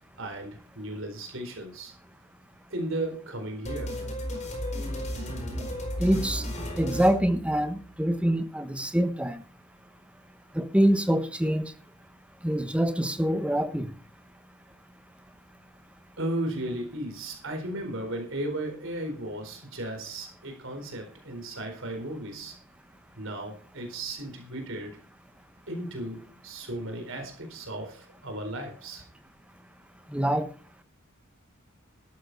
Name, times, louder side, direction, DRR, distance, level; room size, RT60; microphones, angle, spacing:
voice 1, 0.2-1.9 2.7-4.0 16.2-22.5 23.2-25.0 25.7-29.0, right 1 dB, 65° right, 4 dB, 4.3 m, -35 dB
sound 1, 3.6-8.0, equal, 35° left, 4.4 m, -34 dB
voice 2, 6.0-6.4 6.8-9.4 10.5-11.7 12.4-13.9 30.1-30.5, equal, 5° right, 9 dB, 1.2 m, -25 dB
13.0 x 12.0 x 4.1 m, 0.35 s
head